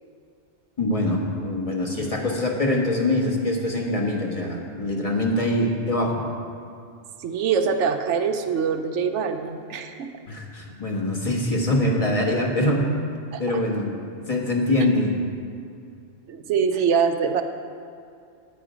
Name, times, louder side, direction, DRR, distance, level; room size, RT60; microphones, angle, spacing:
voice 1, 0.8-6.2 10.3-12.8 13.4-13.9 14.2-15.1, left 1 dB, 30° left, -1 dB, 1.4 m, -24 dB
voice 2, 7.2-10.1 13.3-13.4 16.3-17.4, right 6 dB, 85° right, 7 dB, 1.0 m, -24 dB
9.4 x 9.1 x 5.0 m, 2.4 s
omnidirectional pair, 1.2 m